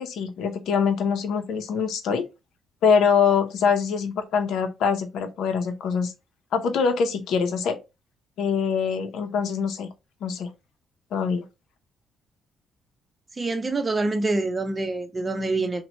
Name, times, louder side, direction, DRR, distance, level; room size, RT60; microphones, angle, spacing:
voice 1, 0.0-2.3 2.8-6.1 6.5-7.8 8.4-9.9 10.2-10.5 11.1-11.5, left 6 dB, 75° left, 0.6 m, -24 dB
voice 2, 13.4-15.8, right 2 dB, 25° right, 0.7 m, -26 dB
2.9 x 2.2 x 4.1 m
cardioid pair, 90°, 0 cm